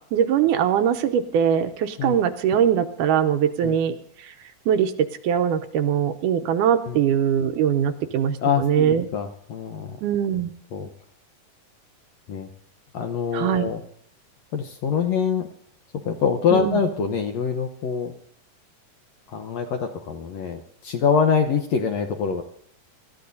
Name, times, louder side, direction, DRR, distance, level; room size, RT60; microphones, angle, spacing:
voice 1, 0.1-3.9 4.2-4.3 4.7-4.9 5.2-9.1 10.0-10.5 13.3-13.7 16.5-16.8, right 9 dB, 80° right, 8 dB, 2.2 m, -21 dB
voice 2, 8.4-10.0 10.7-10.9 12.3-12.5 12.9-13.8 14.5-15.5 16.1-18.1 19.3-22.4, left 6 dB, 70° left, 5 dB, 1.7 m, -24 dB
26.0 x 13.5 x 2.7 m, 0.67 s
omnidirectional pair, 3.9 m